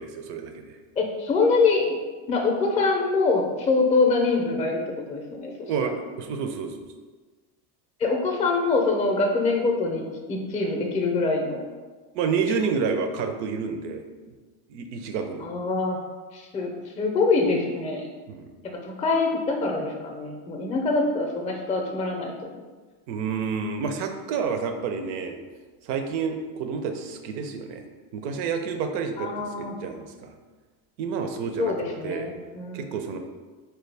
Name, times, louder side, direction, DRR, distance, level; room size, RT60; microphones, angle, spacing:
voice 1, 0.0-0.8 5.6-6.9 12.1-14.0 14.7-15.5 18.3-18.5 23.1-25.4 25.8-27.8 28.1-30.3 31.0-31.7 32.0-32.3 32.7-33.2, right 5 dB, 90° right, 6 dB, 0.6 m, -29 dB
voice 2, 1.0-2.0 2.3-5.9 8.0-11.6 12.5-12.6 15.4-16.0 16.3-18.1 18.6-22.6 29.2-29.8 31.6-33.1, left 3 dB, 15° left, 1 dB, 0.4 m, -25 dB
4.5 x 2.3 x 3.3 m, 1.3 s
supercardioid pair, 115°, 49 cm